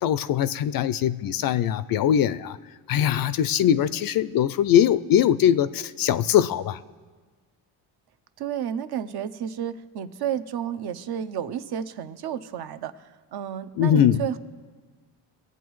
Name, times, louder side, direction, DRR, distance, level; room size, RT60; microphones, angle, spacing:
voice 1, 0.0-2.6 2.9-6.8 13.8-14.2, left 10 dB, 50° left, 16 dB, 0.4 m, -21 dB
voice 2, 8.4-14.4, right 9 dB, 55° right, 11 dB, 0.7 m, -31 dB
20.0 x 8.1 x 3.1 m, 1.5 s
supercardioid pair, 80°, 47 cm